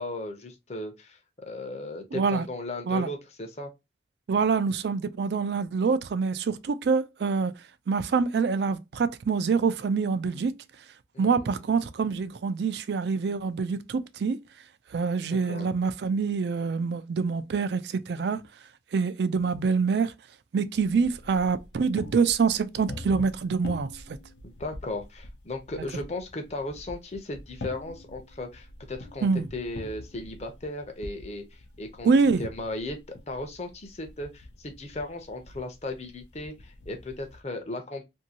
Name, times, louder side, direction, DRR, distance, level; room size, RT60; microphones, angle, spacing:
voice 1, 0.0-3.7 11.1-11.6 15.3-15.7 24.4-32.1 32.4-38.0, left 2 dB, 35° left, 0.6 m, -36 dB
voice 2, 2.1-2.5 2.9-3.1 4.3-7.5 7.9-10.5 11.2-14.4 14.9-18.4 18.9-20.1 20.5-24.2 29.2-29.5 32.0-32.4, right 5 dB, 70° right, 0.4 m, -25 dB
sound 1, 20.8-37.4, left 2 dB, 80° left, 0.6 m, -45 dB
2.7 x 2.6 x 2.7 m
head